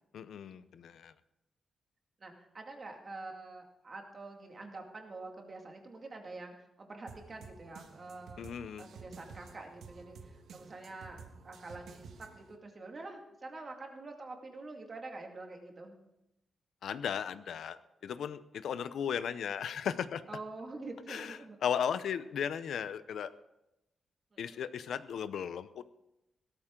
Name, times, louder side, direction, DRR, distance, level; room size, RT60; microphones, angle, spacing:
voice 1, 0.1-1.1 8.4-8.8 16.8-20.2 21.1-23.3 24.4-25.8, left 8 dB, 75° left, 13 dB, 0.6 m, -36 dB
voice 2, 2.2-16.0 20.3-21.6 24.3-24.5, right 3 dB, 30° right, 2 dB, 2.1 m, -46 dB
sound 1, 7.1-12.6, right 5 dB, 80° right, 1.3 m, -52 dB
17.5 x 13.5 x 3.8 m, 0.88 s
wide cardioid pair, 180°, 0 cm